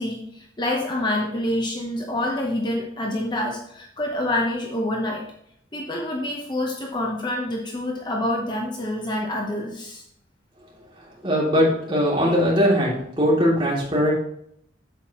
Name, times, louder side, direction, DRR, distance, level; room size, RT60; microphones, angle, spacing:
voice 1, 0.0-5.2 5.7-10.0, left 1 dB, 25° left, 0 dB, 0.9 m, -27 dB
voice 2, 11.2-14.1, equal, 25° right, -6 dB, 2.9 m, -20 dB
8.4 x 7.4 x 3.0 m, 0.72 s
head